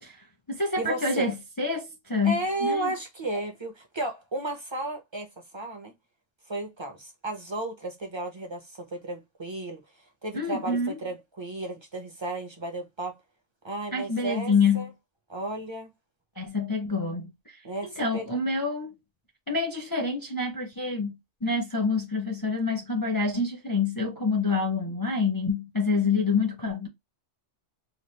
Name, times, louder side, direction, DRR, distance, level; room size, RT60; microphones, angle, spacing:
voice 1, 0.0-2.9 10.3-11.0 13.9-14.9 16.4-19.0 19.5-26.9, left 4 dB, 25° left, 0.5 m, -27 dB
voice 2, 0.8-1.3 2.2-5.9 6.5-9.8 10.2-13.2 13.6-14.9 15.3-15.9 17.6-18.3, right 2 dB, 30° right, 0.6 m, -33 dB
3.0 x 2.4 x 3.2 m
omnidirectional pair, 1.3 m